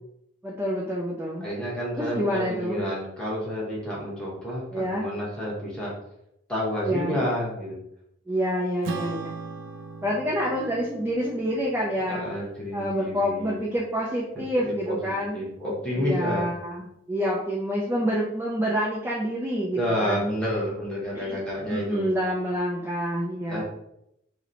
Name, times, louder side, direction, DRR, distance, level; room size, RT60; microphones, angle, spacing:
voice 1, 0.4-1.5 1.9-2.8 4.7-5.1 6.8-7.2 8.3-9.3 10.0-12.3 12.7-15.4 15.9-20.4 21.2-21.4 21.7-23.6, equal, 10° right, -5 dB, 0.4 m, -27 dB
voice 2, 1.4-5.9 6.5-7.8 12.1-13.6 14.9-16.5 19.7-22.1 23.5-23.6, equal, 5° left, -6 dB, 1.0 m, -30 dB
Acoustic guitar / Strum, 8.8-13.6, right 4 dB, 80° right, 0.4 m, -39 dB
2.9 x 2.1 x 3.8 m, 0.79 s
head